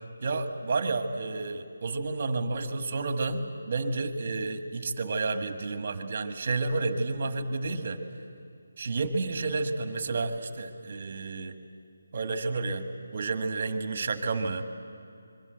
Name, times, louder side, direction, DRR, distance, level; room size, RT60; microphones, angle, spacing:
voice 1, 0.2-8.0 8.8-11.5 12.1-12.9 13.1-14.6, right 3 dB, 30° right, 7 dB, 1.7 m, -30 dB
26.0 x 23.0 x 8.0 m, 2.4 s
figure-of-eight pair, 175°, 0 cm